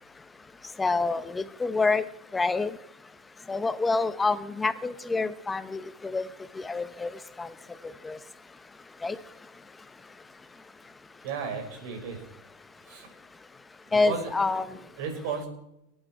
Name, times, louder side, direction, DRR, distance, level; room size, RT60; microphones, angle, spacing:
voice 1, 0.8-2.0 2.3-2.8 3.5-6.3 6.5-7.5 7.8-8.2 9.0-9.2 13.9-14.8, left 3 dB, 10° left, 14 dB, 0.8 m, -27 dB
voice 2, 11.2-12.2 12.9-13.1 13.9-14.2 14.7-15.5, right 6 dB, 65° right, 3 dB, 5.2 m, -34 dB
19.5 x 9.0 x 4.5 m, 0.84 s
supercardioid pair, 130°, 0 cm